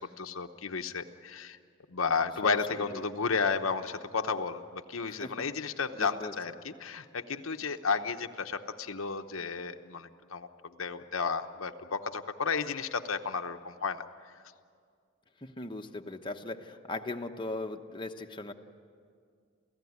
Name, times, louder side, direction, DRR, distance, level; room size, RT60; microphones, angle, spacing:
voice 1, 0.0-1.6 1.9-14.0, left 5 dB, 85° left, 6 dB, 1.0 m, -33 dB
voice 2, 5.0-5.5 6.0-6.3 15.4-18.5, left 2 dB, 25° left, 3 dB, 1.0 m, -39 dB
29.0 x 16.0 x 9.5 m, 2.2 s
head